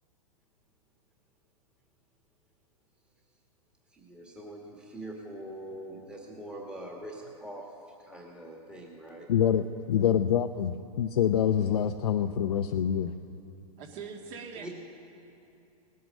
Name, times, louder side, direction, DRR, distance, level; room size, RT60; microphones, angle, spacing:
voice 1, 3.9-9.3 14.5-14.7, right 1 dB, 5° right, -1 dB, 1.6 m, -43 dB
voice 2, 9.3-13.1, left 9 dB, 80° left, 6 dB, 0.6 m, -26 dB
voice 3, 13.8-14.7, right 5 dB, 40° right, 3 dB, 1.9 m, -42 dB
18.5 x 9.3 x 6.3 m, 2.7 s
hypercardioid pair, 130°, 19 cm